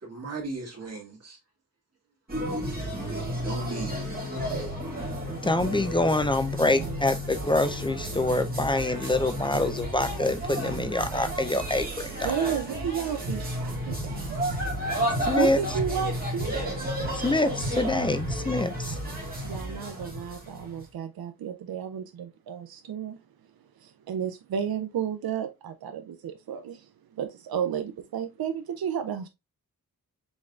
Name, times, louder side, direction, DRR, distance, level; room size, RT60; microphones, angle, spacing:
voice 1, 0.0-1.4 3.4-4.0, right 3 dB, 45° right, 2.0 m, -37 dB
sound 1, 2.3-20.8, equal, 25° right, 1.9 m, -32 dB
voice 2, 5.4-12.4 15.3-15.6 17.1-19.0, left 2 dB, 15° left, 0.4 m, -26 dB
voice 3, 12.2-14.4 15.3-16.7 19.4-23.2 23.8-26.9 27.2-29.3, right 8 dB, 80° right, 0.5 m, -32 dB
5.3 x 3.6 x 2.3 m
wide cardioid pair, 140°, 36 cm